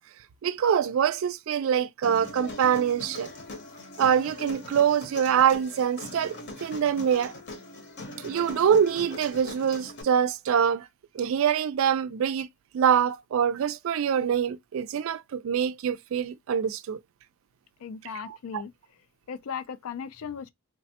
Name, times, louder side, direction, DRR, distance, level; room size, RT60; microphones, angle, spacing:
voice 1, 0.4-3.3 4.0-7.3 8.2-10.9 11.1-12.5 12.7-17.0 18.3-18.6, right 8 dB, 65° right, 0.3 m, -25 dB
Human voice, 2.0-10.0, left 2 dB, 50° left, 0.8 m, -41 dB
voice 2, 17.8-18.7 19.3-20.5, left 6 dB, 75° left, 0.4 m, -37 dB
3.3 x 2.1 x 2.7 m
head